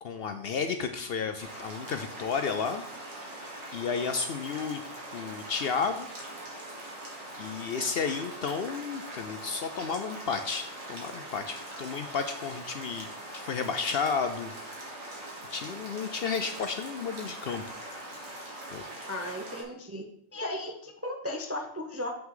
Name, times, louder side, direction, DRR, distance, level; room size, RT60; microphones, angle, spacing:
voice 1, 0.0-2.8 3.7-4.8 5.1-6.1 7.4-13.1 13.3-14.8 15.5-17.8 18.7-18.8, left 5 dB, 60° left, 8 dB, 0.7 m, -32 dB
sound 1, 1.4-19.6, right 1 dB, 85° right, 2.3 m, -42 dB
voice 2, 19.1-20.0 20.3-22.1, left 1 dB, 20° right, 3 dB, 0.4 m, -35 dB
7.4 x 5.8 x 3.7 m, 0.68 s
omnidirectional pair, 1.3 m